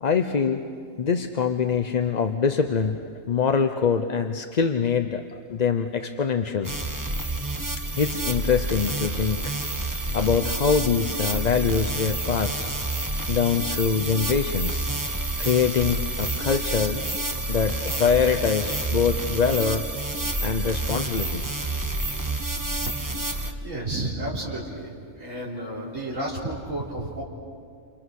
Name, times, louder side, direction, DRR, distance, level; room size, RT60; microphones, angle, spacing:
voice 1, 0.0-0.7 1.0-6.7 8.0-9.5 9.8-12.7 13.3-14.9 15.4-17.1 17.5-19.8 20.4-22.2, left 6 dB, 40° left, 7 dB, 0.7 m, -24 dB
sound 1, 6.6-23.5, right 2 dB, 15° right, 1.2 m, -29 dB
voice 2, 23.6-27.2, right 1 dB, 70° right, -6 dB, 4.2 m, -31 dB
29.5 x 27.5 x 6.5 m, 2.3 s
omnidirectional pair, 1.4 m